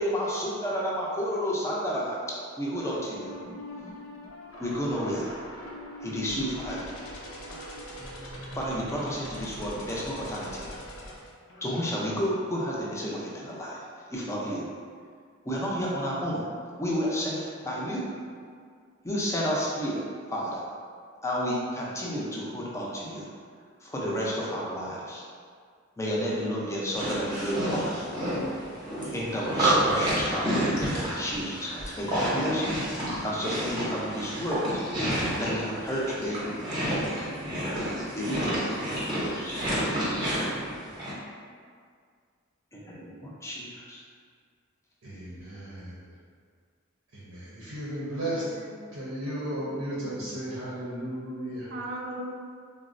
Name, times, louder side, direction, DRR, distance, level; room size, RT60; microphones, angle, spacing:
voice 1, 0.0-2.2 2.6-3.3 4.6-5.3 6.0-6.9 7.5-7.6 8.5-10.7 11.6-13.8 14.1-14.6 15.5-16.5 16.8-18.0 19.0-20.0 20.3-20.6 21.2-23.3 23.8-25.2 26.0-28.0 29.1-34.8 35.4-36.4 38.1-39.9 42.7-44.0, equal, 15° left, -5 dB, 0.4 m, -31 dB
sound 1, 2.7-12.1, left 1 dB, 75° left, 0.6 m, -42 dB
sound 2, 26.9-41.1, right 1 dB, 20° right, 0.7 m, -29 dB
voice 2, 45.0-46.0 47.1-48.5 48.9-51.7, right 1 dB, 90° right, -8 dB, 0.6 m, -34 dB
voice 3, 48.1-49.1 51.7-52.4, right 1 dB, 50° right, -1 dB, 0.4 m, -39 dB
3.6 x 2.0 x 2.5 m, 2.1 s
head